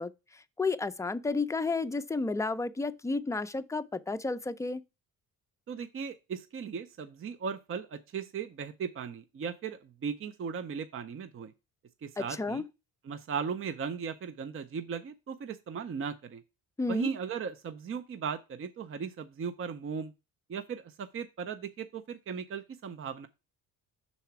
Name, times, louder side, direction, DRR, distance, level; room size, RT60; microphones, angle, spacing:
voice 1, 0.0-4.8 12.2-12.6 16.8-17.1, left 3 dB, 10° left, 0.4 m, -32 dB
voice 2, 5.7-11.5 12.0-12.6 13.0-16.4 16.9-20.1 20.5-23.3, right 6 dB, 40° right, 0.6 m, -37 dB
5.7 x 4.1 x 5.8 m
cardioid pair, 95°, 35 cm